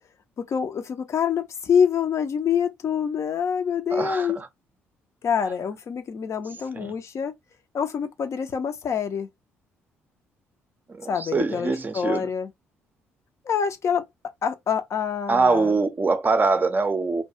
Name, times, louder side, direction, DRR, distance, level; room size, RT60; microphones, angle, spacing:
voice 1, 0.4-4.4 5.2-7.3 7.7-9.3 11.1-12.5 13.4-14.0 14.4-15.8, left 7 dB, 50° left, 0.5 m, -26 dB
voice 2, 3.9-4.5 6.8-6.9 10.9-12.3 15.3-17.2, right 4 dB, 30° right, 0.5 m, -23 dB
2.3 x 2.2 x 2.7 m
hypercardioid pair, 45°, 7 cm